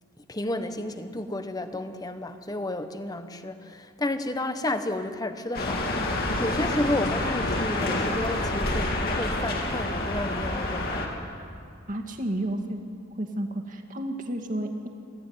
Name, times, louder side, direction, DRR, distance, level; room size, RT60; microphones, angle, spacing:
voice 1, 0.2-11.3, left 1 dB, 20° left, 8 dB, 1.2 m, -32 dB
sound 1, 5.5-11.1, left 2 dB, 50° left, 3.2 m, -28 dB
voice 2, 11.9-12.8 13.2-14.9, right 1 dB, 40° right, 4 dB, 2.1 m, -31 dB
26.0 x 14.5 x 9.6 m, 2.5 s
head